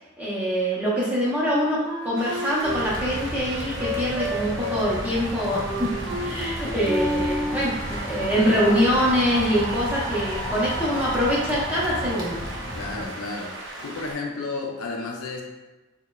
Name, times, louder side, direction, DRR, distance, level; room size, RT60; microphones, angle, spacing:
voice 1, 0.2-5.9 6.2-12.4, equal, 10° right, -7 dB, 0.5 m, -24 dB
Wind instrument woodwind instrument, 1.5-7.8, equal, 30° right, 0.8 m, -31 dB
sound 1, 2.2-14.1, right 1 dB, 60° right, 0.5 m, -35 dB
sound 2, 2.6-13.1, equal, 35° left, 0.7 m, -35 dB
voice 2, 12.7-13.5 13.8-15.4, left 3 dB, 85° left, 0 dB, 0.4 m, -32 dB
3.0 x 2.1 x 2.2 m, 1.2 s
head